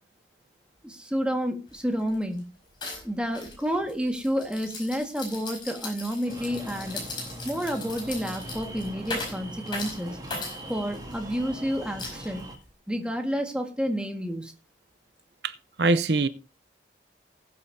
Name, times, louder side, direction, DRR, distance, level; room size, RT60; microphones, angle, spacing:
voice 1, 0.8-2.4 3.0-7.0 7.4-10.2 10.7-12.5 12.9-14.5, equal, 5° right, 1.7 m, -30 dB
sound 1, 1.7-1.8 2.1-2.4 2.8-11.4 12.0-12.7, left 3 dB, 25° left, 4.9 m, -38 dB
sound 2, 6.2-12.6, right 1 dB, 20° right, 2.0 m, -41 dB
voice 2, 15.4-16.3, right 3 dB, 70° right, 0.7 m, -24 dB
19.5 x 8.6 x 2.7 m
head